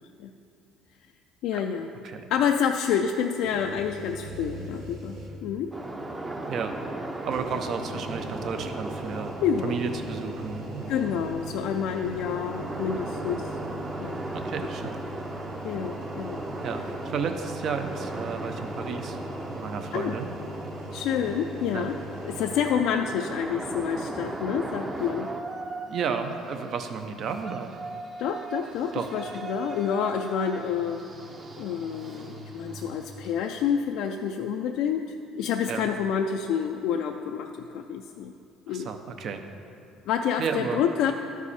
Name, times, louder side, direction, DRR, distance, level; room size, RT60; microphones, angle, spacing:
voice 1, 1.4-1.9 2.3-5.7 9.4-9.8 10.9-13.5 14.0-14.2 15.6-16.4 19.9-20.2 20.9-22.0 22.2-25.4 28.2-31.1 31.6-35.0 35.4-38.3 38.7-38.9 40.1-41.1, left 7 dB, 75° left, 4 dB, 0.3 m, -28 dB
sound 1, 3.4-5.6 6.0-6.1 7.2-22.6, right 1 dB, 75° right, 1.3 m, -41 dB
sound 2, 5.7-25.4, right 2 dB, 20° right, 0.7 m, -37 dB
voice 2, 7.2-9.3 9.6-10.9 14.3-15.0 16.6-19.2 19.5-20.3 21.7-21.9 25.9-27.7 28.9-29.1 35.7-35.9 38.7-39.4 40.4-40.8, right 6 dB, 55° right, 7 dB, 0.7 m, -32 dB
Yell, 23.6-33.8, right 4 dB, 40° right, 1.0 m, -41 dB
12.5 x 4.8 x 4.2 m, 2.7 s
supercardioid pair, 95°, 0 cm